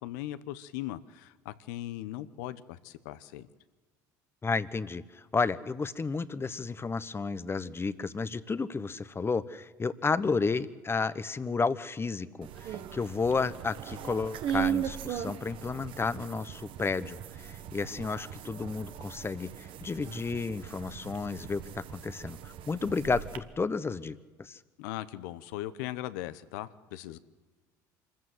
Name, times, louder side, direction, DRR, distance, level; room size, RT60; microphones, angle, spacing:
voice 1, 0.0-3.5 24.8-27.2, left 14 dB, 80° left, 15 dB, 0.9 m, -39 dB
voice 2, 4.4-5.0 5.3-17.2 17.4-24.6, left 4 dB, 25° left, 15 dB, 1.1 m, -32 dB
sound 1, 12.4-23.4, right 9 dB, 60° right, 1.4 m, -38 dB
26.0 x 14.5 x 7.9 m, 1.4 s
hypercardioid pair, 65°, 10 cm